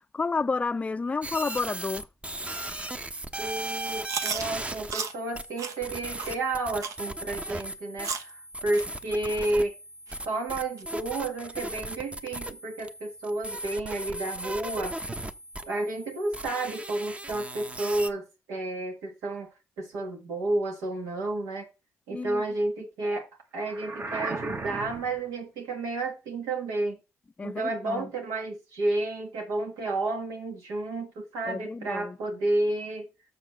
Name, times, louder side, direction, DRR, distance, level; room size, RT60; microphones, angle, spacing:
voice 1, 0.1-2.1 22.1-22.4 27.4-28.1 31.5-32.2, left 4 dB, 25° left, 0.4 m, -30 dB
sound 1, 1.2-18.1, right 1 dB, 20° right, 0.9 m, -37 dB
voice 2, 3.4-9.8 10.3-15.0 15.6-19.5 19.8-21.7 22.1-23.3 23.5-27.0 27.4-33.1, right 2 dB, 90° right, 1.8 m, -31 dB
Chewing mastication, 4.1-4.5 4.9-5.1 5.6-5.7 6.2-6.3 6.8-7.0 7.5-7.6 8.0-8.3 8.7-8.8 9.4-9.5 10.1-10.2 10.8-10.9, right 5 dB, 70° right, 1.0 m, -33 dB
sound 2, 23.6-25.2, right 3 dB, 40° right, 1.2 m, -35 dB
6.7 x 4.2 x 6.6 m
supercardioid pair, 60°, 6 cm